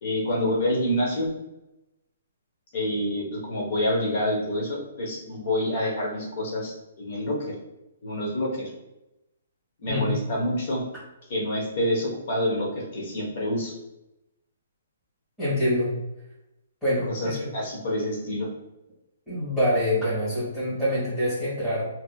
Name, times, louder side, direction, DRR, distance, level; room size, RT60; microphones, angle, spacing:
voice 1, 0.0-1.3 2.7-7.5 8.0-8.7 9.8-10.8 11.3-13.7 17.1-18.5, left 1 dB, 45° left, -2 dB, 1.0 m, -27 dB
voice 2, 15.4-15.9 16.8-17.5 19.3-21.9, equal, 5° left, -15 dB, 1.3 m, -25 dB
2.8 x 2.8 x 2.3 m, 0.93 s
hypercardioid pair, 165°, 0 cm